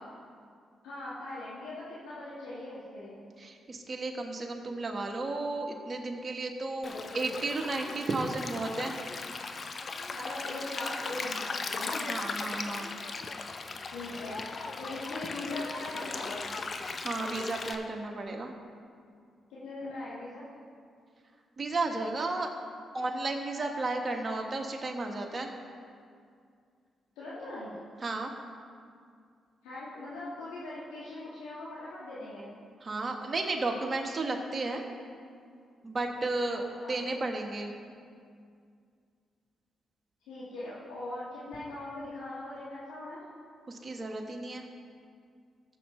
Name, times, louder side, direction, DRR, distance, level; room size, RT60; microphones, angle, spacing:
voice 1, 0.8-3.2 10.1-12.1 13.9-16.5 19.5-20.5 27.2-27.7 29.6-32.5 36.8-37.0 40.3-43.2, left 2 dB, 90° left, -10 dB, 1.7 m, -40 dB
voice 2, 3.4-9.0 12.1-12.9 17.0-18.5 21.6-22.5 22.9-25.5 28.0-28.3 32.8-34.8 35.8-36.6 36.9-37.7 43.7-44.7, right 2 dB, 40° right, 2 dB, 1.5 m, -33 dB
Stream, 6.8-17.8, left 4 dB, 50° left, 0.7 m, -38 dB
14.5 x 7.4 x 3.3 m, 2.2 s
supercardioid pair, 50°, 0 cm